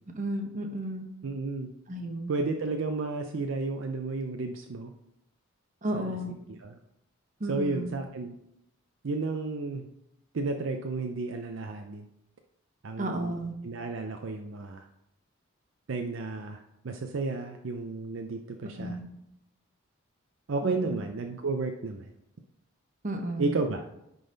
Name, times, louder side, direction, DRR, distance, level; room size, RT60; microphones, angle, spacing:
voice 1, 0.1-1.1 1.9-2.3 5.8-6.3 7.4-7.9 13.0-13.5 18.8-19.0 20.6-21.0 23.0-23.6, right 1 dB, 35° right, 4 dB, 0.9 m, -33 dB
voice 2, 1.2-1.7 2.3-4.9 5.9-6.2 6.6-6.8 7.5-8.3 9.0-9.8 10.3-12.1 12.8-13.4 13.6-14.9 15.9-19.0 20.5-22.1 23.4-23.8, right 3 dB, 60° right, 5 dB, 0.5 m, -32 dB
10.0 x 4.0 x 3.9 m, 0.81 s
head